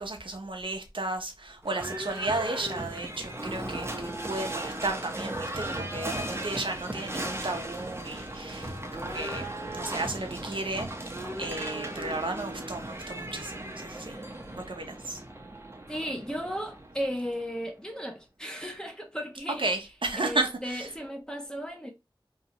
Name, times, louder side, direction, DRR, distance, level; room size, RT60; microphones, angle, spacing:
voice 1, 0.0-14.2 14.6-15.2 19.5-20.9, right 2 dB, 70° right, 0.6 m, -34 dB
Livestock farm animals working animals / Bell, 1.6-17.5, right 1 dB, 30° right, 0.7 m, -37 dB
voice 2, 15.9-19.6 20.2-21.9, equal, 10° left, 0.8 m, -35 dB
2.7 x 2.3 x 2.8 m
wide cardioid pair, 45°, 9 cm